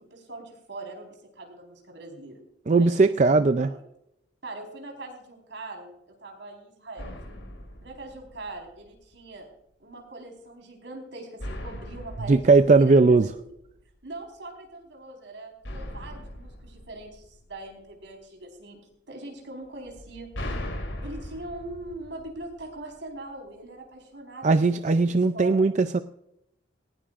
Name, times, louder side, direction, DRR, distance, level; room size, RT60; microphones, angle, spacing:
voice 1, 0.1-2.4 2.8-3.8 4.4-7.1 7.8-9.5 9.8-13.5 14.0-18.8 19.1-20.3 21.0-25.6, right 2 dB, 70° right, 2 dB, 4.4 m, -42 dB
voice 2, 2.7-3.7 12.3-13.3 24.4-26.0, right 3 dB, 40° right, 10 dB, 0.4 m, -19 dB
sound 1, 7.0-8.9 11.4-13.8 15.6-17.9 19.9-22.9, left 1 dB, 85° left, 3.2 m, -39 dB
18.5 x 17.5 x 2.5 m, 0.80 s
head